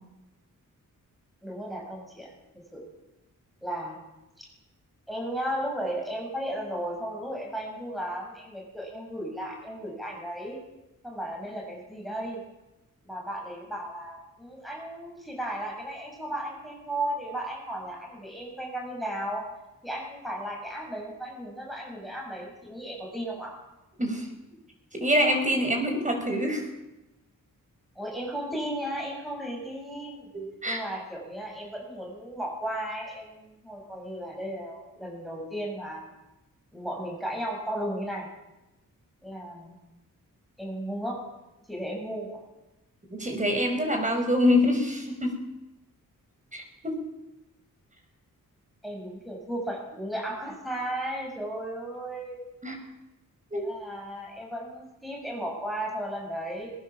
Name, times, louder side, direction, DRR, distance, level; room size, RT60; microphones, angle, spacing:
voice 1, 1.4-2.3 2.7-2.8 3.6-4.0 4.4-4.5 5.1-10.6 11.0-12.4 13.0-19.4 19.8-23.6 28.0-30.3 30.6-36.1 36.7-38.3 39.2-39.8 40.6-41.2 41.7-42.4 48.8-52.5 53.5-56.7, right 1 dB, ahead, -1 dB, 7.1 m, -35 dB
voice 2, 24.9-26.7 30.3-30.8 43.1-45.4 46.5-47.0 52.6-52.7 53.5-53.7, left 1 dB, 20° right, 4 dB, 6.3 m, -25 dB
21.0 x 20.5 x 7.5 m, 0.98 s
wide cardioid pair, 110°, 34 cm